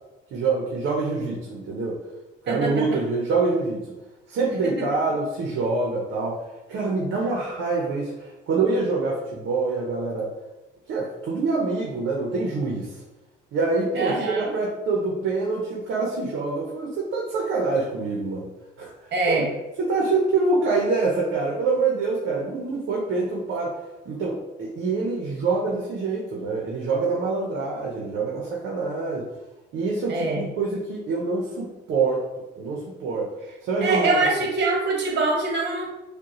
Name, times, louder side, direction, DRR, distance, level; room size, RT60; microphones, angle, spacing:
voice 1, 0.3-2.0 2.4-3.9 4.3-6.4 6.7-10.3 10.9-13.0 13.5-18.5 18.8-19.4 19.8-23.8 24.1-29.3 29.7-32.2 32.6-33.3 33.6-34.2, right 3 dB, 80° right, -2 dB, 0.8 m, -25 dB
voice 2, 2.5-3.0 4.6-4.8 13.9-14.5 19.1-19.5 30.1-30.4 33.8-35.9, right 3 dB, 60° right, -1 dB, 1.3 m, -24 dB
5.1 x 2.3 x 3.0 m, 1.0 s
cardioid pair, 90°, 20 cm